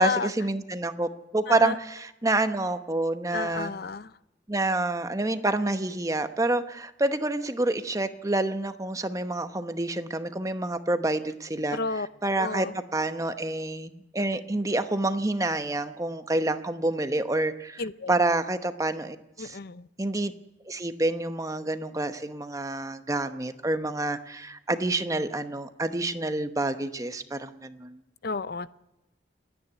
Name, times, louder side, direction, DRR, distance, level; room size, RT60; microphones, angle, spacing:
voice 1, 0.0-3.7 4.5-11.8 12.2-12.7 12.9-17.8 18.1-19.6 20.0-20.3 20.7-28.0, right 2 dB, 20° right, 9 dB, 1.0 m, -28 dB
voice 2, 3.3-4.1 11.7-12.1 12.4-12.7 17.8-18.1 19.4-19.9 28.2-28.7, left 4 dB, 55° left, 16 dB, 0.6 m, -31 dB
28.5 x 9.9 x 9.4 m, 0.95 s
head